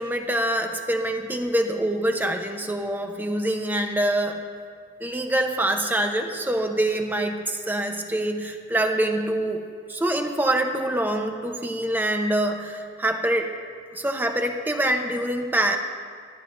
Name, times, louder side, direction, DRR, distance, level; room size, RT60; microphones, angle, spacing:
voice 1, 0.0-4.4 5.0-9.6 9.9-13.5 13.9-15.8, right 1 dB, 10° right, 4 dB, 0.9 m, -25 dB
28.0 x 12.5 x 2.7 m, 2.1 s
head